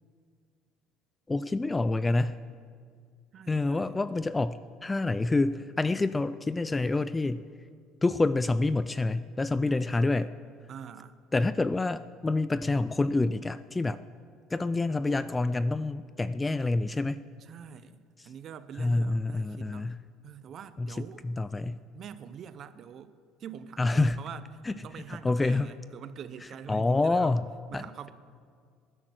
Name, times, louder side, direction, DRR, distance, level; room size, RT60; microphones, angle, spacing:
voice 1, 1.3-2.4 3.5-7.4 8.0-10.3 11.3-14.0 14.5-17.2 18.8-20.0 20.8-21.8 23.8-24.2 24.7-24.8 25.2-25.7 26.7-27.5 27.7-27.8, left 2 dB, 10° left, 15 dB, 0.3 m, -27 dB
voice 2, 3.3-4.0 9.6-9.9 10.7-11.2 17.4-19.9 20.2-21.2 21.9-23.1 23.4-27.4 27.7-28.1, right 8 dB, 40° right, 13 dB, 0.7 m, -45 dB
20.0 x 11.0 x 6.4 m, 2.1 s
cardioid pair, 150°, 0 cm